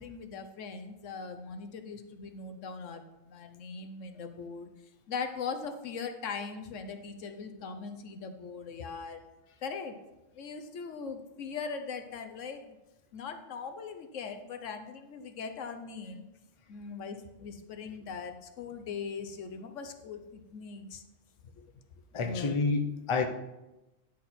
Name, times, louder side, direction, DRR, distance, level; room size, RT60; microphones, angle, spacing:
voice 1, 0.0-3.0 3.3-4.7 5.1-9.2 9.6-9.9 10.3-12.8 13.1-16.3 16.7-21.0 21.6-21.7 22.1-22.6, left 5 dB, 80° left, 7 dB, 1.2 m, -40 dB
voice 2, 22.1-23.3, left 4 dB, 30° left, 6 dB, 0.7 m, -29 dB
10.0 x 6.4 x 4.2 m, 0.99 s
omnidirectional pair, 1.3 m